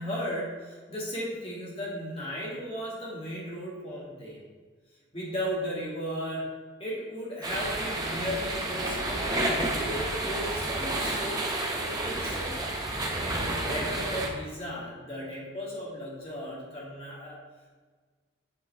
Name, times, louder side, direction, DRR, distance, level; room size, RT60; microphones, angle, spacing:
voice 1, 0.0-4.4 5.1-6.5 6.8-12.5 13.2-17.4, equal, 30° left, -5 dB, 2.1 m, -36 dB
sound 1, 7.4-14.3, right 2 dB, 20° right, 0.9 m, -30 dB
8.6 x 5.5 x 3.5 m, 1.4 s
head